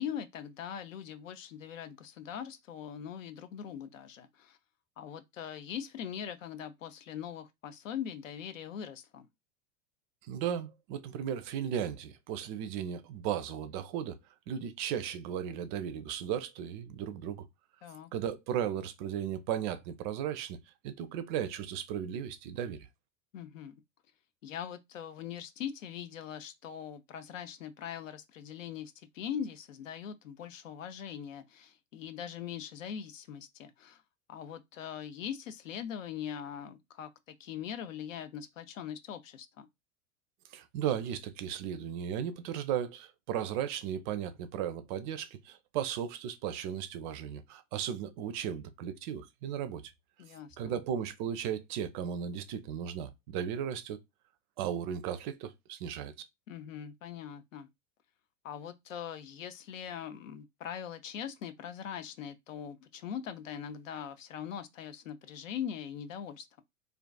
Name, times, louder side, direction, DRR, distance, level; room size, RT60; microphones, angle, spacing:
voice 1, 0.0-4.6 5.0-9.3 17.8-18.1 23.3-23.7 24.4-34.0 34.3-39.7 50.2-50.8 56.5-57.7 58.4-66.6, left 8 dB, 75° left, 0.5 m, -41 dB
voice 2, 10.3-14.2 14.5-17.5 18.1-20.6 20.8-22.8 40.5-49.8 50.6-54.0 54.6-56.1, right 9 dB, 40° right, 0.4 m, -35 dB
2.4 x 2.3 x 2.2 m
figure-of-eight pair, 90°, 39 cm